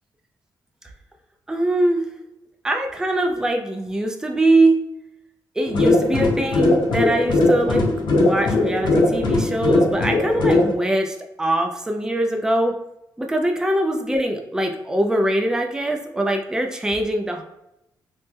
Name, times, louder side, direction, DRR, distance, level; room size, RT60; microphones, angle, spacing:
voice 1, 1.5-2.1 2.6-4.8 5.6-12.7 13.2-17.4, right 1 dB, 10° right, 3 dB, 0.4 m, -22 dB
sound 1, 5.7-10.7, left 2 dB, 75° left, 0.8 m, -19 dB
3.2 x 2.0 x 3.3 m, 0.86 s
cardioid pair, 95°, 8 cm